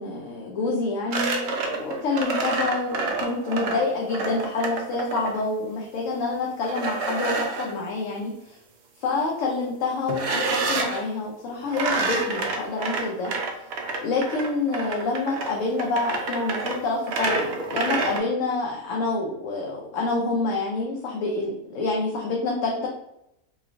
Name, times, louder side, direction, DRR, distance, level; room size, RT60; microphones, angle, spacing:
voice 1, 0.0-8.6 9.0-13.3 14.0-22.9, left 3 dB, 70° left, -2 dB, 0.9 m, -27 dB
sound 1, 1.1-5.4 6.6-7.7 10.1-11.0 11.7-18.2, right 3 dB, 65° right, 0.7 m, -28 dB
3.0 x 2.3 x 2.5 m, 0.83 s
omnidirectional pair, 1.5 m